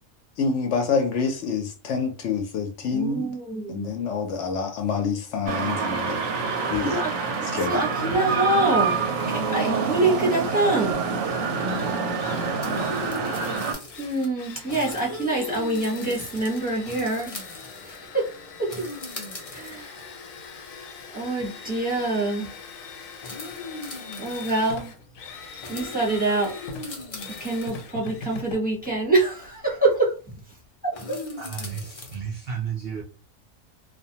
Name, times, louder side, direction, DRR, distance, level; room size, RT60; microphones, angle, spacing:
voice 1, 0.4-3.3 3.7-6.2 6.7-7.0 7.5-7.8, left 5 dB, 70° left, 5 dB, 0.8 m, -27 dB
voice 2, 2.9-3.9 6.9-7.1 7.6-9.0 9.3-11.0 14.0-17.3 17.8-18.3 18.6-18.7 19.5-20.0 21.1-22.5 24.2-24.9 25.7-26.6 27.4-30.1 31.0-31.2, right 2 dB, 10° right, -4 dB, 0.7 m, -25 dB
sound 1, 5.5-13.7, right 5 dB, 80° right, 1.0 m, -26 dB
Drill, 11.6-29.8, left 4 dB, 90° left, 1.0 m, -42 dB
sound 2, 12.6-14.3 14.6-18.1 18.7-20.0 20.8-20.9 21.4-21.5 21.8-22.1 23.2-24.8 25.6-27.9 29.3-29.5 30.9-32.2, left 2 dB, 50° left, 0.4 m, -38 dB
voice 3, 31.4-33.0, right 7 dB, 65° right, -1 dB, 0.6 m, -32 dB
2.5 x 2.1 x 2.7 m, 0.34 s
omnidirectional pair, 1.4 m